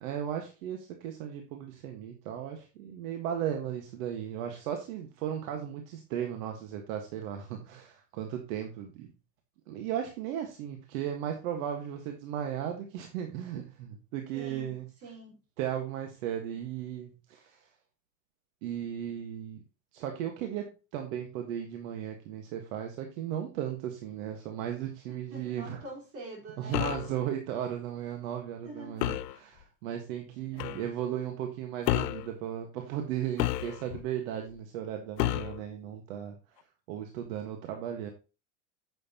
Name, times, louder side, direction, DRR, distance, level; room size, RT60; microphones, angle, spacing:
voice 1, 0.0-9.1 9.7-14.9 15.6-17.7 18.6-19.6 19.9-25.8 26.6-36.4 36.9-38.1, right 10 dB, 55° right, 1.6 m, -36 dB
voice 2, 14.3-15.4 25.1-26.8 28.6-29.0 30.5-30.8, right 2 dB, 30° right, 4.4 m, -46 dB
sound 1, 26.7-27.1 29.0-29.4 30.6-30.8 31.9-32.3 33.4-34.0 35.2-35.6, left 15 dB, 85° left, 0.8 m, -30 dB
9.5 x 8.0 x 2.9 m
supercardioid pair, 165°, 47 cm